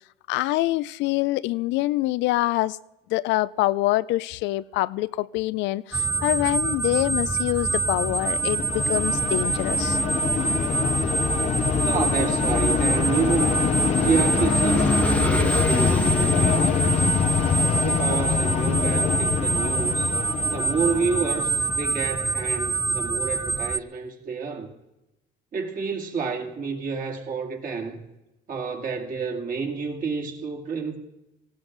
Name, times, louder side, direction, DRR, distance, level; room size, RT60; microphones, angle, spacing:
voice 1, 0.3-2.8 3.1-10.0, left 17 dB, 70° left, 0.5 m, -25 dB
sound 1, 5.9-23.8, right 4 dB, 10° right, 0.5 m, -26 dB
sound 2, 7.7-22.2, left 8 dB, 35° left, 0.8 m, -25 dB
Vehicle / Engine, 9.4-19.2, left 1 dB, 5° left, 1.1 m, -32 dB
voice 2, 11.8-13.6 14.0-17.1 17.8-20.1 20.5-24.7 25.5-28.0 28.5-31.0, right 5 dB, 45° right, 2.5 m, -29 dB
18.5 x 16.5 x 4.0 m
supercardioid pair, 100°, 20 cm